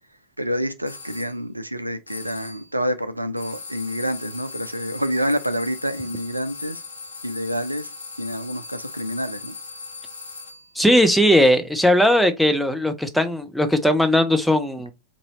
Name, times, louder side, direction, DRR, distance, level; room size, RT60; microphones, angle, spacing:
voice 1, 0.4-6.8 7.2-7.9 8.2-9.5, equal, 85° right, 0.3 m, -27 dB
sound 1, 0.8-1.4 2.1-2.7 3.4-10.7, left 4 dB, 70° left, 0.6 m, -38 dB
voice 2, 10.8-14.9, left 1 dB, ahead, 0.5 m, -18 dB
2.9 x 2.7 x 4.1 m
figure-of-eight pair, 90°, 0 cm